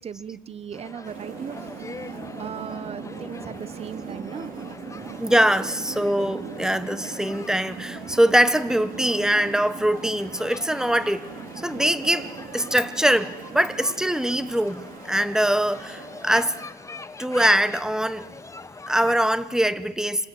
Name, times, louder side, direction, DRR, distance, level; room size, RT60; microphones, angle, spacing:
voice 1, 0.0-1.7 2.0-4.5, right 7 dB, 35° right, 1.2 m, -38 dB
sound 1, 0.7-19.1, left 3 dB, 20° left, 1.3 m, -43 dB
sound 2, 1.0-16.7, right 6 dB, 55° right, 3.5 m, -40 dB
voice 2, 5.2-11.3 11.6-12.3 12.5-16.6 17.2-18.3 18.9-20.3, right 1 dB, 5° right, 1.4 m, -22 dB
28.5 x 26.5 x 7.9 m
cardioid pair, 110°, 17 cm